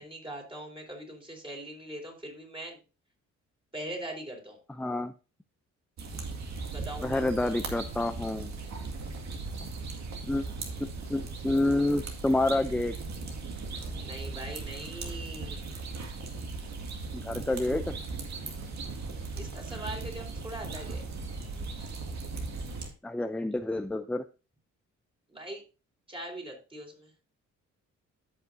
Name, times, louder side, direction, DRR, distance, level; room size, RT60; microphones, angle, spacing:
voice 1, 0.0-2.8 3.7-4.6 6.7-7.6 14.0-15.6 19.3-21.0 25.3-25.6 26.1-27.1, right 1 dB, 15° right, 1 dB, 3.9 m, -41 dB
voice 2, 4.8-5.1 7.0-8.6 10.2-10.4 10.8-12.9 17.1-17.9 23.0-24.2, left 2 dB, 5° left, 9 dB, 0.5 m, -28 dB
sound 1, 6.0-22.9, right 3 dB, 65° right, 2.1 m, -38 dB
14.0 x 5.6 x 2.7 m, 0.31 s
cardioid pair, 90°, 30 cm